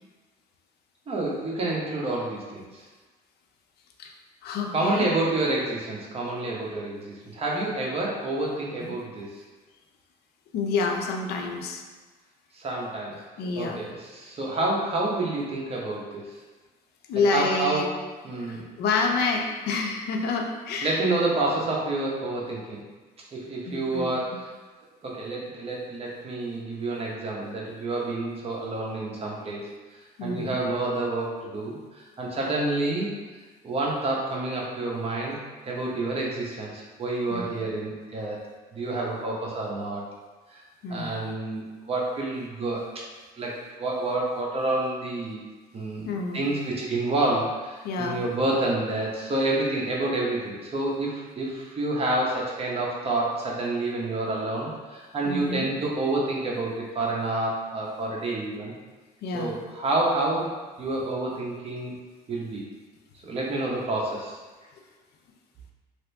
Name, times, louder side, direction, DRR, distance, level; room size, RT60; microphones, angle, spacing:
voice 1, 1.1-2.8 4.7-9.3 12.5-13.2 13.6-16.3 17.3-17.9 18.2-18.7 20.8-22.8 23.3-24.5 25.0-29.7 30.2-33.1 33.6-38.5 38.7-40.0 40.5-40.6 40.9-43.0 43.3-45.4 45.7-58.7 59.3-61.9 62.3-62.6 63.2-64.4, right 2 dB, 35° right, -3 dB, 0.8 m, -28 dB
voice 2, 4.4-5.1 8.8-8.9 10.5-11.8 13.4-13.8 17.1-17.9 18.5-21.0 23.7-24.2 30.2-30.6 37.3-37.5 40.8-41.1 46.1-46.5 47.8-48.2 55.2-55.7 59.2-59.5, left 4 dB, 70° left, 3 dB, 0.5 m, -28 dB
2.8 x 2.6 x 3.3 m, 1.3 s
cardioid pair, 110°, 17 cm